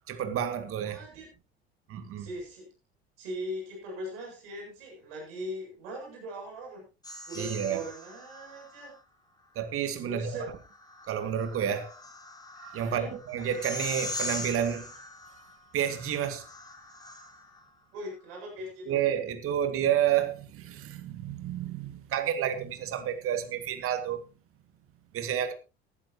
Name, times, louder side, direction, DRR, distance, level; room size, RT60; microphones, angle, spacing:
voice 1, 0.1-1.0 1.9-2.3 7.4-7.8 9.6-10.5 11.1-11.9 12.6-14.9 15.7-16.5 18.9-24.2 25.1-25.5, right 9 dB, 45° right, 2.2 m, -30 dB
voice 2, 0.8-1.3 2.2-2.7 3.2-6.9 7.3-9.0 10.0-10.5 12.8-13.2 17.9-19.0, equal, 70° right, 7.6 m, -40 dB
sound 1, 7.0-9.0 10.4-17.6, left 2 dB, 15° left, 3.9 m, -41 dB
19.5 x 12.0 x 2.9 m
figure-of-eight pair, 65°, 30 cm